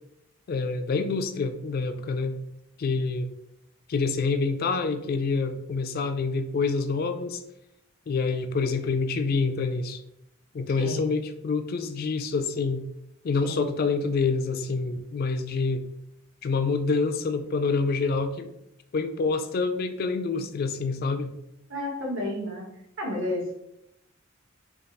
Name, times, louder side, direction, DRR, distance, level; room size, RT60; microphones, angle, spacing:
voice 1, 0.5-2.4 2.8-3.3 3.9-7.4 8.1-10.0 10.5-12.8 13.2-15.8 16.4-18.5 18.9-21.3, left 4 dB, 50° left, 9 dB, 0.3 m, -27 dB
voice 2, 10.8-11.1 13.4-13.6 21.7-22.7 23.0-23.5, left 1 dB, 65° right, -1 dB, 1.0 m, -31 dB
3.5 x 2.3 x 4.0 m, 0.81 s
head